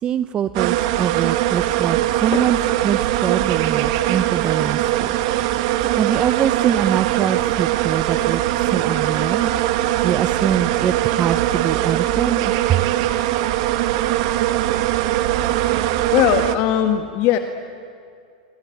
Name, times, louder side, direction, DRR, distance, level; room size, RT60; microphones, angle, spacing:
voice 1, 0.0-2.6 2.8-5.2 6.0-9.5 10.0-12.8, right 9 dB, 25° right, 12 dB, 0.6 m, -23 dB
sound 1, 0.5-16.5, right 13 dB, 55° right, 1.6 m, -21 dB
voice 2, 16.1-17.4, left 11 dB, 40° left, 6 dB, 1.6 m, -19 dB
25.5 x 25.0 x 9.1 m, 2.4 s
supercardioid pair, 140°, 4 cm